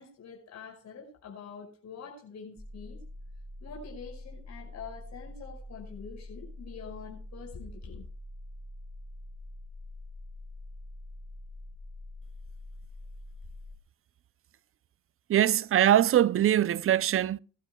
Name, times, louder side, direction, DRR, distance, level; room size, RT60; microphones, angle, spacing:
voice 1, 0.0-3.0 3.6-8.0, left 6 dB, 65° left, 5.5 m, -45 dB
sound 1, 2.6-13.8, left 1 dB, 10° left, 1.8 m, -45 dB
voice 2, 15.3-17.4, right 11 dB, 45° right, 0.5 m, -22 dB
21.5 x 12.0 x 2.3 m
cardioid pair, 90°, 30 cm